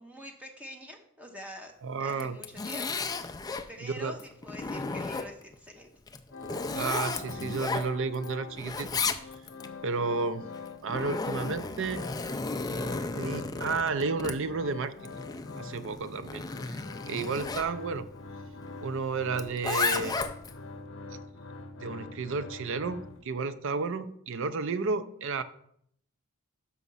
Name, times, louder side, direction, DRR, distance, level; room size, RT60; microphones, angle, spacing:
voice 1, 0.0-1.7 2.0-3.1 3.7-5.9, left 1 dB, 5° right, 2 dB, 0.9 m, -45 dB
voice 2, 1.8-2.4 3.8-4.2 6.7-9.0 9.8-10.5 10.8-12.1 12.7-15.1 15.6-16.4 16.7-16.8 17.1-18.1 18.8-20.2 21.8-25.4, right 4 dB, 60° right, 12 dB, 0.5 m, -32 dB
Zipper (clothing), 2.1-3.7 4.2-5.5 6.1-8.3 8.5-9.7 10.6-17.7 19.3-20.6, left 4 dB, 15° left, 0.4 m, -34 dB
sound 1, 6.3-8.7 9.0-12.3 12.6-23.5, left 4 dB, 60° left, 0.7 m, -45 dB
6.1 x 5.7 x 5.4 m, 0.69 s
head